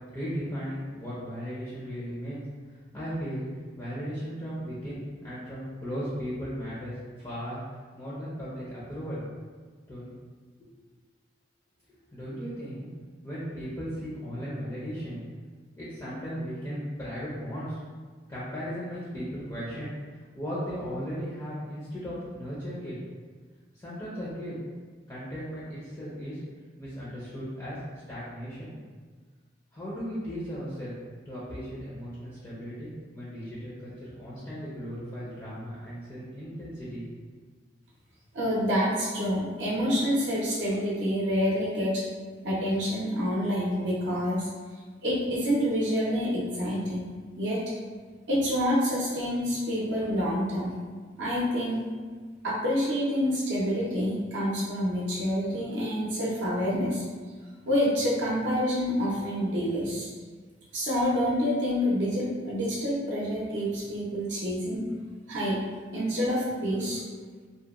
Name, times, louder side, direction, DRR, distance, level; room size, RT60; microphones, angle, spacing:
voice 1, 0.1-2.4 2.9-3.5 3.8-7.6 8.0-9.2 9.9-10.1 10.6-10.7 12.1-12.9 13.2-15.2 15.8-17.8 18.3-19.9 20.3-22.9 23.7-24.6 25.1-26.4 26.8-27.8 28.1-28.7 29.7-30.9 31.3-37.3, equal, 20° left, -9 dB, 0.4 m, -36 dB
voice 2, 38.3-42.0 42.4-44.5 45.0-47.1 47.4-47.6 48.3-50.7 51.2-51.8 52.4-57.0 57.7-60.1 60.7-64.8 65.3-65.6 65.9-67.0, equal, 70° right, -6 dB, 0.5 m, -27 dB
2.7 x 2.0 x 2.3 m, 1.5 s
head